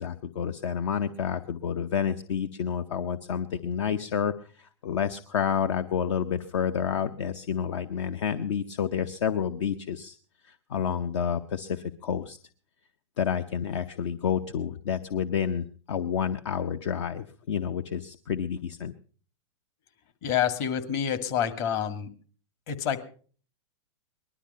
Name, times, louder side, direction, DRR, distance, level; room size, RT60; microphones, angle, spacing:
voice 1, 0.0-10.2 10.4-12.4 13.2-18.9, left 8 dB, 70° left, 10 dB, 0.8 m, -29 dB
voice 2, 20.2-22.1 22.7-23.0, left 9 dB, 50° left, 10 dB, 2.1 m, -27 dB
20.0 x 12.0 x 5.5 m, 0.43 s
hypercardioid pair, 115°, 16 cm